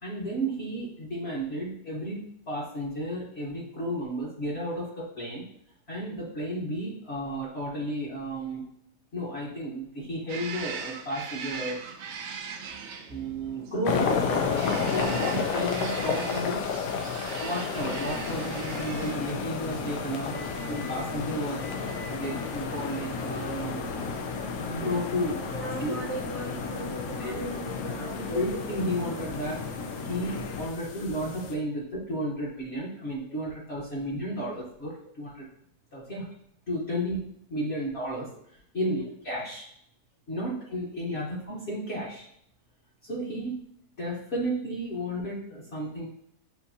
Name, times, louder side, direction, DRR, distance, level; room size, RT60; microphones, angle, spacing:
voice 1, 0.0-5.4 5.9-8.7 9.1-11.8 13.1-16.6 17.4-20.4 20.7-21.7 22.1-23.9 24.6-25.9 27.2-27.5 28.0-29.6 30.0-35.5 35.9-36.3 36.7-37.2 37.5-38.3 38.7-39.7 40.3-42.3 43.0-43.5 44.0-46.1, equal, 45° left, -6 dB, 1.1 m, -33 dB
sound 1, 10.3-20.0, right 6 dB, 75° right, 0.6 m, -40 dB
sound 2, 13.9-31.5, left 6 dB, 90° left, 1.2 m, -33 dB
sound 3, 17.7-30.7, left 4 dB, 70° left, 0.8 m, -36 dB
voice 2, 25.4-28.4 30.8-30.9 33.9-34.0 36.9-37.0 39.0-39.1, right 1 dB, 30° right, -3 dB, 0.7 m, -39 dB
7.0 x 2.6 x 2.6 m, 0.71 s
omnidirectional pair, 1.8 m